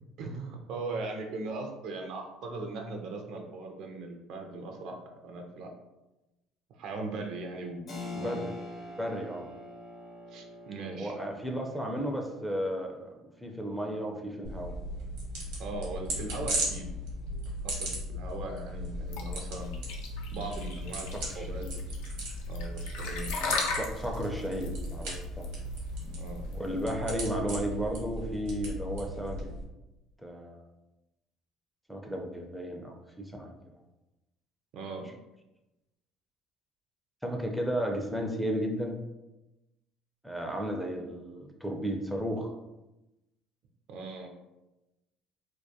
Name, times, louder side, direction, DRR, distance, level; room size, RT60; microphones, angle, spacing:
voice 1, 0.2-5.0 5.2-5.7 6.8-8.4 10.3-11.2 15.6-16.9 17.6-19.7 20.3-21.6 22.5-23.6 26.2-26.4 34.7-35.1 43.9-44.3, right 3 dB, 65° right, 3 dB, 0.4 m, -39 dB
Keyboard (musical), 7.9-18.2, left 2 dB, 45° left, 0.7 m, -47 dB
voice 2, 8.1-8.5 8.9-9.5 11.0-14.7 21.1-21.8 23.4-25.5 26.5-29.5 30.2-30.6 31.9-33.7 37.2-39.0 40.2-42.5, equal, ahead, 1 dB, 0.4 m, -34 dB
sound 1, 14.4-29.6, equal, 85° right, 1.0 m, -37 dB
sound 2, 19.1-26.8, left 4 dB, 90° left, 0.4 m, -36 dB
2.2 x 2.2 x 2.7 m, 0.99 s
supercardioid pair, 95°, 0 cm